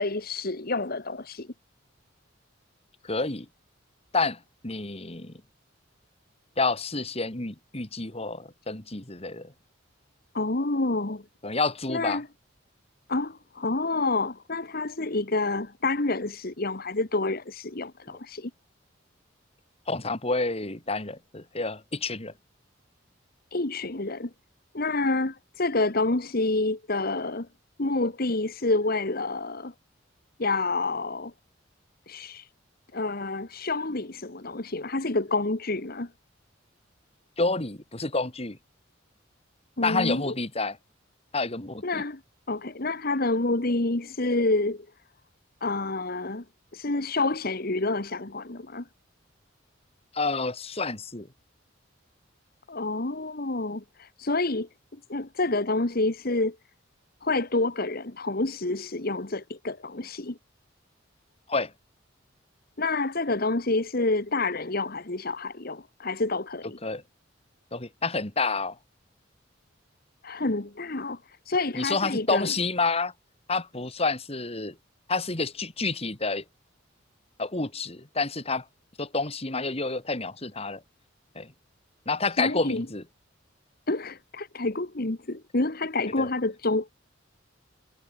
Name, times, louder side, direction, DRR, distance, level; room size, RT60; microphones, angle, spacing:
voice 1, 0.0-1.5 10.3-11.2 11.9-12.3 13.1-18.5 23.5-24.3 24.7-27.5 27.8-29.7 30.4-31.3 32.1-32.5 32.9-36.1 39.8-40.3 41.8-42.2 42.5-44.9 45.6-46.4 46.7-48.9 52.7-54.7 55.1-56.6 57.2-60.4 62.8-66.8 70.2-72.5 82.4-82.9 83.9-86.9, left 2 dB, 50° left, 1.5 m, -28 dB
voice 2, 3.0-3.5 4.1-5.3 6.6-9.5 11.4-12.2 19.9-22.3 37.4-38.6 39.8-40.8 41.3-42.0 50.1-51.3 61.5-61.7 66.8-67.0 67.7-68.8 71.7-73.1 73.5-74.8 75.1-76.4 77.4-78.6 79.0-80.8 81.3-81.5 82.1-83.0 86.2-86.3, left 3 dB, 30° left, 2.5 m, -29 dB
head